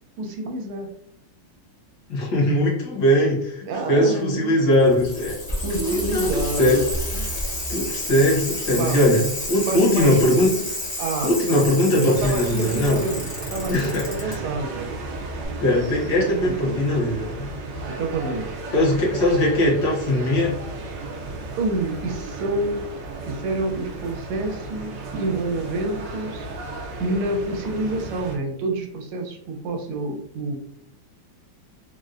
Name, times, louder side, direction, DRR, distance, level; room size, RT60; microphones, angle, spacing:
voice 1, 0.2-0.9 3.7-4.6 5.6-7.3 8.7-9.0 9.7-10.4 11.0-11.7 12.0-13.3 13.5-15.0 16.0-16.8 17.9-18.5 21.6-22.8 23.3-26.5 27.0-30.6, right 2 dB, 85° right, 2 dB, 1.5 m, -28 dB
voice 2, 2.1-5.4 5.8-6.8 7.1-7.3 7.7-10.6 11.2-13.0 13.7-14.4 15.6-17.5 18.7-20.6, left 1 dB, 60° left, -3 dB, 1.4 m, -20 dB
Bicycle, 4.7-14.3 15.4-15.5, left 1 dB, 40° left, 0.5 m, -30 dB
sound 1, 12.1-28.4, right 3 dB, 70° right, 1.2 m, -34 dB
4.1 x 2.1 x 2.4 m, 0.72 s
omnidirectional pair, 2.4 m